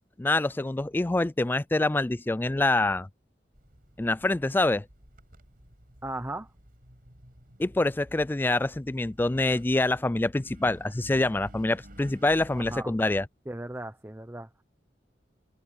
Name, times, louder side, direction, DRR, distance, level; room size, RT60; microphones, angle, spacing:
voice 1, 0.2-3.1 4.0-4.9 7.6-13.3, left 2 dB, 10° left, 0.3 m, -26 dB
Engine, 3.5-12.8, equal, 55° right, 5.2 m, -52 dB
voice 2, 6.0-6.5 12.5-13.0 13.5-14.5, right 1 dB, 15° right, 0.9 m, -37 dB
head